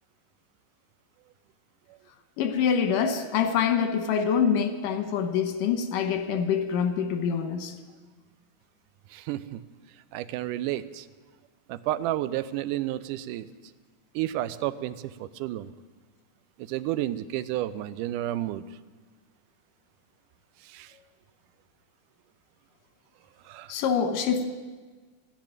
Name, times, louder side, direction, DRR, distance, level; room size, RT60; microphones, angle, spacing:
voice 1, 2.4-7.7 23.7-24.5, left 7 dB, 85° left, 7 dB, 2.6 m, -25 dB
voice 2, 9.1-9.6 10.1-11.1 11.7-13.5 14.2-15.7 16.6-18.6 20.6-20.9 23.5-23.7, right 14 dB, 85° right, 14 dB, 2.1 m, -31 dB
13.0 x 10.5 x 8.9 m, 1.4 s
omnidirectional pair, 3.7 m